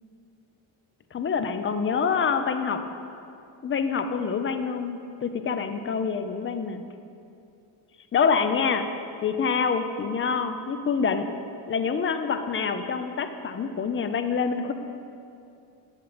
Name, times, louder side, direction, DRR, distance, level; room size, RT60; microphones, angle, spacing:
voice 1, 1.1-2.8 3.6-6.8 8.1-8.9 9.2-11.3 11.7-14.7, left 6 dB, 25° left, 9 dB, 0.6 m, -26 dB
10.0 x 7.0 x 5.1 m, 2.6 s
cardioid pair, 100°, 46 cm